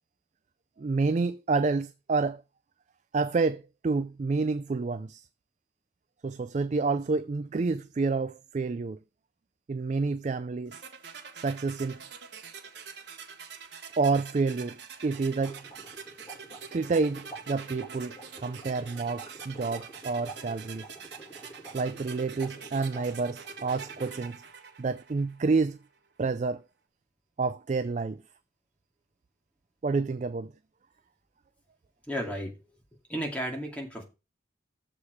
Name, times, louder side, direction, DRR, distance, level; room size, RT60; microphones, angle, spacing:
voice 1, 0.8-2.4 3.1-5.3 6.2-9.0 9.7-10.8 11.3-12.0 14.0-15.6 16.7-20.9 21.7-24.4 24.8-25.8 26.2-26.6 27.4-28.2 29.8-30.5, right 4 dB, 40° right, 0.3 m, -29 dB
sound 1, 10.7-25.6, right 6 dB, 65° right, 1.5 m, -45 dB
sound 2, 15.0-24.5, right 2 dB, 25° left, 2.9 m, -48 dB
voice 2, 32.1-32.5 33.1-34.0, equal, 5° left, 2.2 m, -33 dB
7.1 x 4.9 x 6.3 m
head